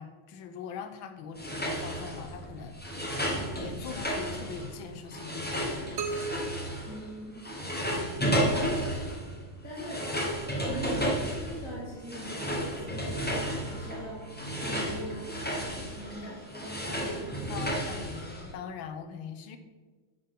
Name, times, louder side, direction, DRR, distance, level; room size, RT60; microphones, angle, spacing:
voice 1, 0.0-6.0 16.2-16.4 17.5-19.6, left 6 dB, 75° left, 8 dB, 1.4 m, -42 dB
sound 1, 1.3-7.1 7.4-18.5, equal, 10° left, 0.4 m, -33 dB
sound 2, 6.0-7.9, right 4 dB, 85° right, 0.6 m, -38 dB
voice 2, 6.9-7.4 8.4-8.8 9.6-10.0 10.7-17.6, equal, 40° left, -7 dB, 2.1 m, -41 dB
Bowed string instrument, 11.5-17.0, right 3 dB, 25° right, 1.4 m, -50 dB
11.0 x 5.5 x 3.7 m, 1.4 s
omnidirectional pair, 2.3 m